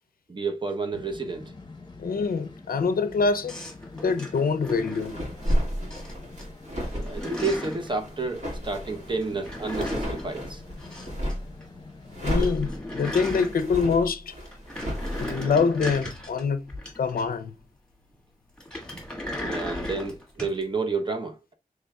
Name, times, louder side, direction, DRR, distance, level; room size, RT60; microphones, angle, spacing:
voice 1, 0.3-1.5 6.9-10.6 19.4-21.5, right 3 dB, 30° right, 0.8 m, -30 dB
sound 1, 0.9-12.8, left 3 dB, 30° left, 0.8 m, -46 dB
voice 2, 2.0-3.6 4.0-5.2 12.2-14.4 15.2-17.6, left 5 dB, 80° left, 0.5 m, -25 dB
sound 2, 3.5-5.6 5.9-6.4 6.7-7.9 9.2-11.4 11.6-11.7 12.0-12.1 12.3-14.0 14.4-17.5 18.6-20.6, left 1 dB, 5° left, 1.6 m, -37 dB
sound 3, 5.0-11.5 12.1-15.4, equal, 50° right, 1.9 m, -32 dB
6.4 x 3.3 x 2.3 m
wide cardioid pair, 80°, 15 cm